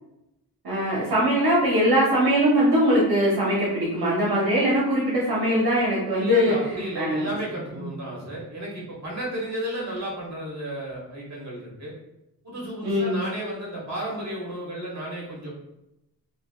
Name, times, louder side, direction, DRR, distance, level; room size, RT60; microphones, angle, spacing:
voice 1, 0.6-6.5 7.0-7.2 12.8-13.2, equal, 70° right, -5 dB, 0.8 m, -21 dB
voice 2, 6.1-11.9 12.4-15.5, right 1 dB, 45° right, -4 dB, 1.3 m, -33 dB
3.3 x 2.5 x 2.2 m, 0.88 s
wide cardioid pair, 85°, 39 cm